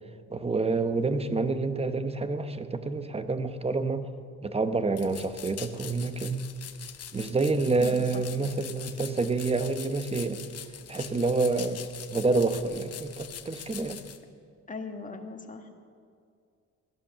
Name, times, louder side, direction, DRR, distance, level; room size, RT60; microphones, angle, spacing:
voice 1, 0.3-4.1 4.4-6.5 7.1-10.4 10.9-14.0, right 3 dB, 20° right, 10 dB, 0.9 m, -28 dB
sound 1, 4.9-14.2, left 9 dB, 55° left, 1.0 m, -43 dB
voice 2, 7.8-8.2 14.7-15.7, left 4 dB, 25° left, 4 dB, 1.6 m, -39 dB
16.5 x 11.5 x 6.7 m, 2.3 s
cardioid pair, 90°, 30 cm